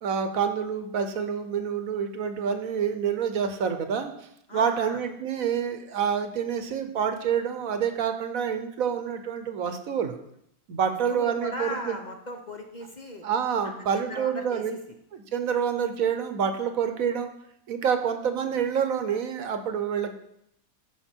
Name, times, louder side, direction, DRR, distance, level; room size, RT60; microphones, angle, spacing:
voice 1, 0.0-4.1 4.5-10.2 10.7-12.0 13.2-14.8 15.1-17.3 17.7-20.1, right 7 dB, 70° right, 8 dB, 1.3 m, -27 dB
voice 2, 4.5-5.0 10.9-13.2 13.6-14.8, left 1 dB, 35° left, 3 dB, 0.9 m, -38 dB
13.5 x 5.3 x 4.5 m, 0.75 s
omnidirectional pair, 1.5 m